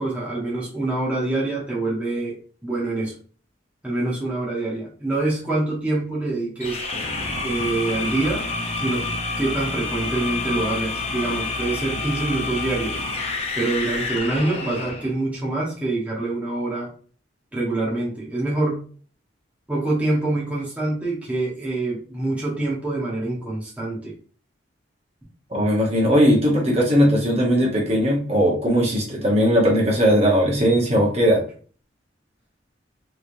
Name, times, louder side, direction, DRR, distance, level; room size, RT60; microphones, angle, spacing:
voice 1, 0.0-2.4 2.6-3.1 3.8-6.8 7.4-8.5 8.8-9.1 9.4-13.0 13.5-16.9 17.5-18.8 19.7-24.1, right 2 dB, 10° right, -6 dB, 0.9 m, -25 dB
sound 1, 6.6-15.1, left 3 dB, 35° left, 0.6 m, -28 dB
voice 2, 25.5-31.4, equal, 35° right, -3 dB, 1.0 m, -18 dB
3.1 x 3.1 x 2.6 m, 0.41 s
head